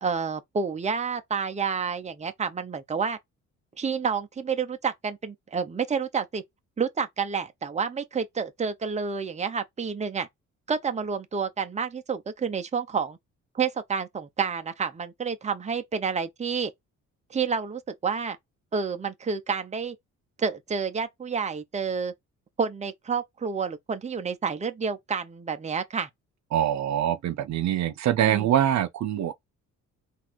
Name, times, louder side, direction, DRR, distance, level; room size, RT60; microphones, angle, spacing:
voice 1, 0.0-3.2 3.8-6.4 6.8-10.3 10.7-13.2 13.5-16.7 17.3-18.4 18.7-20.0 20.4-22.1 22.6-26.1 28.2-28.5, right 5 dB, 25° right, 0.7 m, -29 dB
voice 2, 26.5-29.3, right 11 dB, 65° right, 0.7 m, -24 dB
3.9 x 2.7 x 4.5 m
cardioid pair, 90°, 30 cm